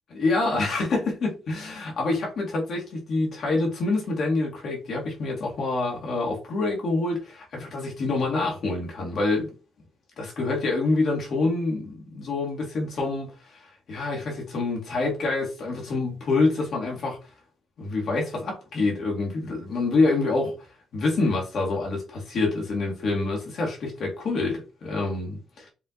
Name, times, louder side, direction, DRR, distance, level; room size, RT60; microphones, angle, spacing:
voice 1, 0.1-9.5 10.2-17.2 17.8-20.5 20.9-25.7, left 3 dB, 60° left, 2.1 m, -26 dB
5.5 x 3.6 x 2.6 m
cardioid pair, 90°, 0 cm